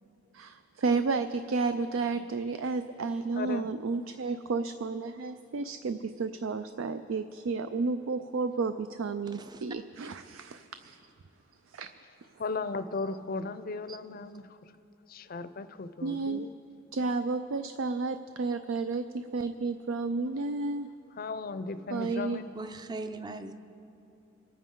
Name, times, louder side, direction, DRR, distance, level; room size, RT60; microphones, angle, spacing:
voice 1, 0.3-11.0 11.7-11.9 16.0-16.5 16.9-20.9 21.9-22.4, right 4 dB, 75° right, 10 dB, 0.4 m, -32 dB
voice 2, 3.3-3.7 12.4-14.7 15.1-16.5 21.2-22.5, left 3 dB, 45° left, 12 dB, 0.5 m, -36 dB
voice 3, 9.3-9.6 13.9-14.0 22.0-22.1 22.5-23.5, right 2 dB, 20° right, 9 dB, 0.5 m, -40 dB
27.0 x 9.4 x 3.8 m, 3.0 s
head